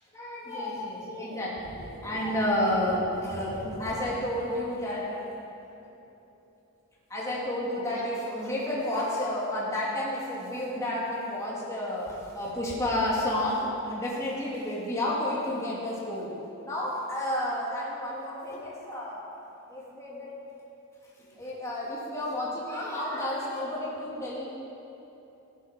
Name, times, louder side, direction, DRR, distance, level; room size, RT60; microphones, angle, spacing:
voice 1, 0.1-5.3 7.1-16.3 16.6-19.2 19.7-20.3 21.3-24.5, left 1 dB, 15° left, -7 dB, 2.8 m, -31 dB
15.5 x 11.0 x 5.3 m, 2.9 s
head